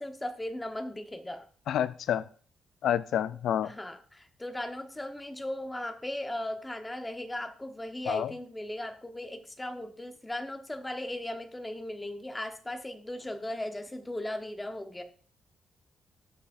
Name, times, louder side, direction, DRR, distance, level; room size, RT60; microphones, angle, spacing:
voice 1, 0.0-1.5 3.6-15.0, left 1 dB, 10° left, 6 dB, 1.1 m, -37 dB
voice 2, 1.7-2.2 2.8-3.7 8.1-8.3, left 10 dB, 85° left, 15 dB, 0.3 m, -28 dB
18.5 x 6.3 x 2.6 m, 0.42 s
cardioid pair, 125°, 0 cm